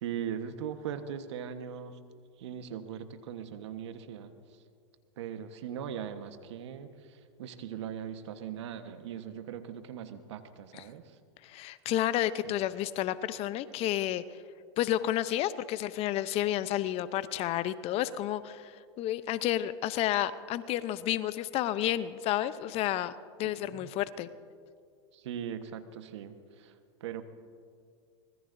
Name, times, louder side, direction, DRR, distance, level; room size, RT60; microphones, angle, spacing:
voice 1, 0.0-2.0 2.4-4.3 5.2-11.2 12.4-12.5 23.4-23.9 25.1-26.7 27.0-27.2, right 8 dB, 70° right, 9 dB, 1.3 m, -40 dB
voice 2, 11.4-14.2 14.8-23.1 23.4-24.3, left 13 dB, 40° left, 14 dB, 0.7 m, -31 dB
24.5 x 20.0 x 2.7 m, 2.2 s
hypercardioid pair, 105°, 15 cm